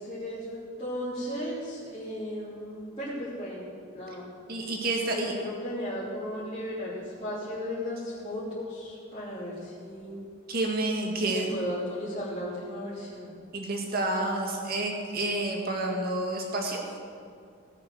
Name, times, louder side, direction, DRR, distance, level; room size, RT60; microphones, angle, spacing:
voice 1, 0.0-3.7 3.9-4.3 5.0-10.3 11.2-13.3, equal, 30° left, -11 dB, 3.1 m, -35 dB
voice 2, 4.5-5.3 10.5-11.5 13.5-16.8, right 2 dB, 50° right, 1 dB, 2.0 m, -29 dB
17.0 x 6.6 x 6.3 m, 2.3 s
head